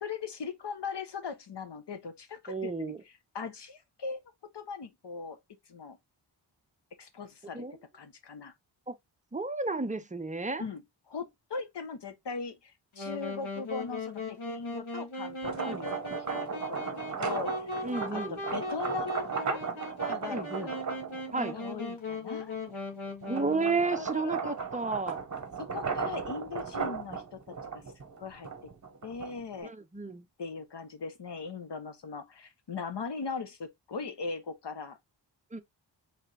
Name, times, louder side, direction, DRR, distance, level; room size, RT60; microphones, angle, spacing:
voice 1, 0.0-2.9 3.3-4.2 4.5-5.4 5.7-6.0 7.0-7.7 7.9-8.5 10.6-19.6 20.0-20.7 21.5-22.6 23.6-24.6 25.7-27.4 27.7-27.8 28.2-28.5 29.0-29.7 30.4-35.0, left 5 dB, 60° left, 1.0 m, -39 dB
voice 2, 2.5-3.0 7.5-7.8 8.9-9.0 9.3-10.6 15.7-15.8 17.8-18.4 20.3-20.7 21.3-21.5 23.3-25.2 29.6-30.3 35.5-35.6, right 3 dB, 15° right, 0.5 m, -32 dB
Wind instrument woodwind instrument, 13.0-23.9, left 2 dB, 85° left, 1.6 m, -39 dB
sound 1, 15.3-21.9 22.4-29.6, right 5 dB, 35° right, 0.9 m, -36 dB
4.8 x 3.4 x 2.7 m
wide cardioid pair, 105°, 47 cm